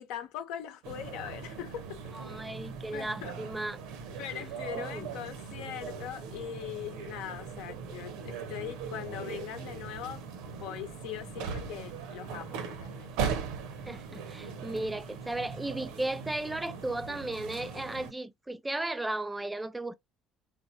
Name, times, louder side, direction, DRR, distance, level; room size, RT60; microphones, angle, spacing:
voice 1, 0.0-2.1 2.9-3.4 4.2-13.1, left 10 dB, 60° left, 0.8 m, -41 dB
sound 1, 0.8-18.1, right 6 dB, 60° right, 0.8 m, -40 dB
voice 2, 2.1-3.8 4.7-5.1 13.9-20.0, right 2 dB, 10° right, 0.5 m, -35 dB
3.7 x 3.6 x 2.6 m
figure-of-eight pair, 55°, 0 cm